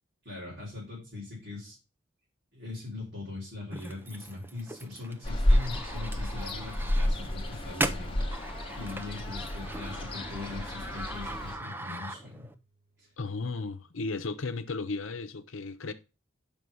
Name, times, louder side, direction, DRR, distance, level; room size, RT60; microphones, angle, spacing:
voice 1, 0.2-1.8 2.5-12.5 13.0-13.1, left 2 dB, 50° right, 4.1 m, -41 dB
sound 1, 3.7-12.5, right 2 dB, 10° right, 0.5 m, -39 dB
sound 2, 4.6-4.7 5.5-6.7 7.1-8.3 9.6-13.5, right 2 dB, 70° right, 3.9 m, -56 dB
Ocean, 5.2-11.5, left 1 dB, 25° left, 1.1 m, -30 dB
voice 2, 13.2-15.9, left 3 dB, 80° left, 0.8 m, -35 dB
6.4 x 5.4 x 5.4 m
head